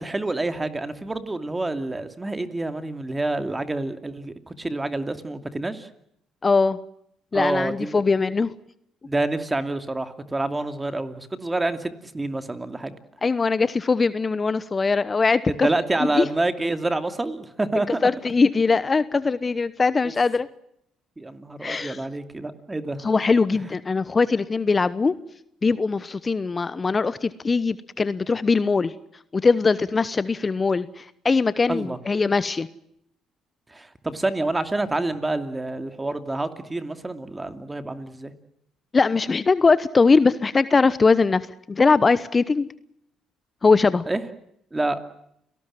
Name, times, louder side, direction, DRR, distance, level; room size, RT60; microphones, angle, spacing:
voice 1, 0.0-5.9 7.3-8.0 9.0-13.0 15.5-18.0 20.0-20.1 21.2-23.0 31.7-32.0 33.7-38.3 44.1-44.2 44.7-45.0, right 2 dB, 20° right, 9 dB, 2.7 m, -27 dB
voice 2, 6.4-6.8 7.3-8.5 13.2-15.7 16.2-16.3 18.0-20.5 21.6-22.0 23.0-25.2 25.6-28.9 29.3-32.7 38.9-41.4 41.7-42.7 43.6-44.1, left 4 dB, 30° left, 16 dB, 1.0 m, -21 dB
29.5 x 18.5 x 7.7 m, 0.77 s
hypercardioid pair, 60°, 0 cm